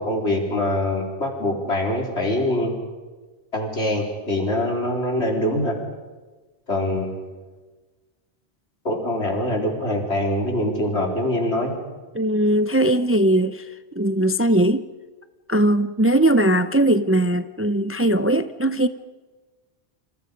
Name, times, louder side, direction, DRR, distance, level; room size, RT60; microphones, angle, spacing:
voice 1, 0.0-2.7 3.5-5.8 6.7-7.2 8.8-11.7, left 1 dB, 75° left, 1 dB, 4.6 m, -24 dB
voice 2, 12.1-14.9 15.5-18.9, right 1 dB, 15° right, 11 dB, 0.6 m, -20 dB
29.0 x 27.0 x 5.3 m, 1.3 s
omnidirectional pair, 1.1 m